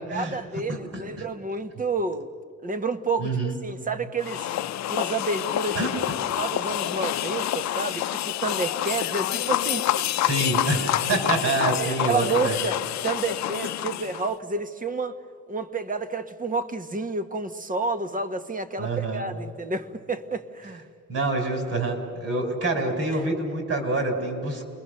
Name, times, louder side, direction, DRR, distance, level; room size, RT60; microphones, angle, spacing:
voice 1, 0.1-2.3 2.6-4.5 4.9-5.8 6.3-10.1 11.8-15.2 15.5-20.8, right 3 dB, 25° right, 1.3 m, -30 dB
voice 2, 0.7-1.3 3.2-3.6 5.8-6.2 10.2-12.6 18.8-19.2 21.1-24.6, right 2 dB, 50° right, 5.5 m, -27 dB
sound 1, 4.2-14.3, left 13 dB, 65° left, 0.6 m, -27 dB
29.0 x 21.5 x 6.6 m
cardioid pair, 90°, 30 cm